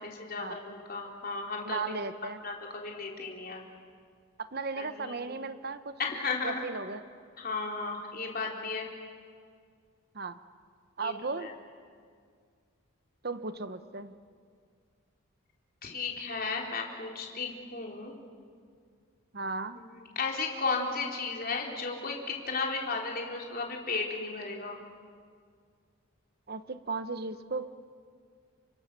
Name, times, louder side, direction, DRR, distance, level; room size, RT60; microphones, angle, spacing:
voice 1, 0.0-1.8 2.4-3.6 4.8-5.3 6.0-6.6 7.4-8.9 11.0-11.5 15.8-18.2 19.8-24.8, left 4 dB, 45° left, 0 dB, 3.9 m, -34 dB
voice 2, 1.6-2.4 4.4-5.9 6.4-7.0 10.1-10.4 11.0-11.5 13.2-14.2 19.3-19.8 26.5-27.7, right 4 dB, 45° right, 11 dB, 1.0 m, -36 dB
30.0 x 26.0 x 6.9 m, 2.1 s
head